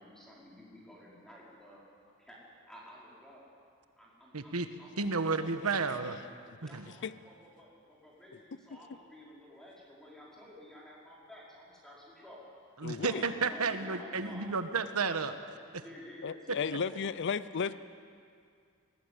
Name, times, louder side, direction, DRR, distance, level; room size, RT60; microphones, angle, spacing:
voice 1, 0.0-1.8 2.2-3.4 4.0-5.9 6.6-12.5 12.9-14.5 15.8-17.1 17.6-17.8, equal, 5° left, -5 dB, 4.9 m, -52 dB
voice 2, 4.3-4.7 5.0-6.2 6.6-6.9 12.8-15.3 15.7-15.8, right 4 dB, 85° right, 9 dB, 1.3 m, -32 dB
voice 3, 12.8-13.2 16.2-17.7, left 6 dB, 55° left, 15 dB, 0.5 m, -34 dB
19.5 x 18.5 x 8.4 m, 2.3 s
head